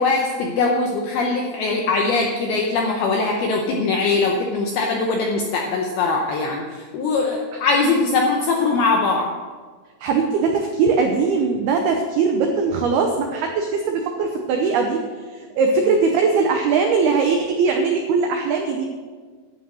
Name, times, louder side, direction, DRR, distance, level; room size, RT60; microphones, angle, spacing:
voice 1, 0.0-9.3, left 3 dB, 80° left, 1 dB, 2.2 m, -21 dB
voice 2, 10.0-15.0 15.3-18.9, right 4 dB, 85° right, 3 dB, 2.2 m, -20 dB
11.5 x 8.4 x 6.3 m, 1.5 s
omnidirectional pair, 5.7 m